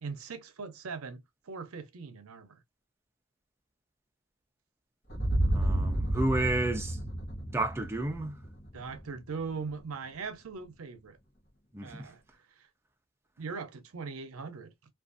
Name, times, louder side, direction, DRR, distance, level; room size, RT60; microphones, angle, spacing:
voice 1, 0.0-2.6 8.7-11.2 11.8-12.2 12.5-12.7 13.4-14.7, right 5 dB, 80° right, 0.6 m, -40 dB
sound 1, 5.1-9.1, right 1 dB, 50° left, 1.0 m, -31 dB
voice 2, 5.5-7.0 7.5-8.4 11.7-12.1, right 2 dB, 10° right, 0.5 m, -31 dB
2.5 x 2.4 x 2.5 m
head